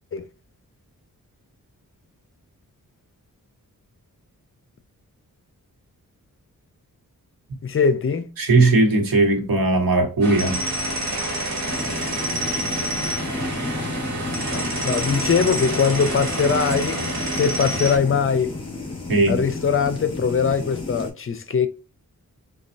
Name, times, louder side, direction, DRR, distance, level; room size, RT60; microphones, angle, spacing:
voice 1, 7.6-8.3 14.5-17.0 17.3-18.5 19.3-21.7, left 6 dB, 40° left, 0.4 m, -21 dB
voice 2, 8.4-10.6 19.1-19.4, right 2 dB, 80° right, 1.0 m, -18 dB
sound 1, 10.2-18.0, right 1 dB, 55° right, 1.4 m, -27 dB
sound 2, 11.6-21.1, left 3 dB, 15° left, 1.2 m, -32 dB
4.1 x 2.3 x 2.5 m
wide cardioid pair, 140°, 34 cm